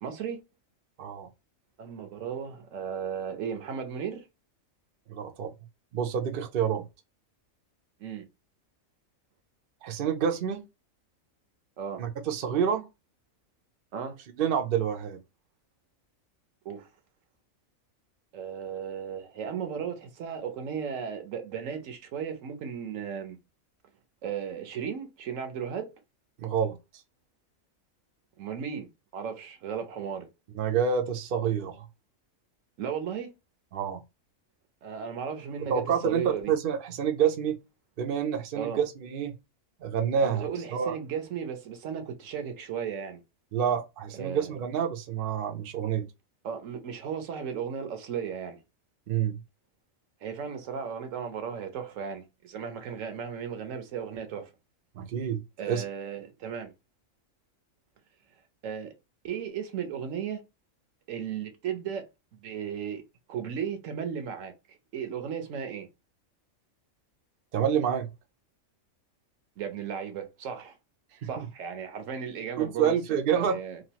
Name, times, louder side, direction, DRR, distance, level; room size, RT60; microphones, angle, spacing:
voice 1, 0.0-0.4 1.8-4.3 8.0-8.3 11.8-12.0 13.9-14.2 16.6-16.9 18.3-23.4 24.2-25.9 28.4-30.3 32.8-33.3 34.8-36.5 38.5-38.8 40.2-43.2 44.1-44.6 46.4-48.6 50.2-54.5 55.6-56.7 58.6-58.9 59.2-60.4 61.1-63.0 63.3-65.9 69.6-70.8 71.2-73.8, right 7 dB, 70° right, 1.0 m, -35 dB
voice 2, 1.0-1.3 5.1-5.5 5.9-6.8 9.8-10.6 12.0-12.9 14.4-15.2 26.4-26.8 30.5-31.9 33.7-34.0 35.7-36.2 36.5-37.6 38.0-39.3 39.8-40.9 43.5-46.0 49.1-49.4 54.9-55.4 55.7-55.8 67.5-68.1 71.2-71.4 72.6-73.6, right 8 dB, 55° right, 0.6 m, -28 dB
3.0 x 2.4 x 2.8 m
omnidirectional pair, 1.4 m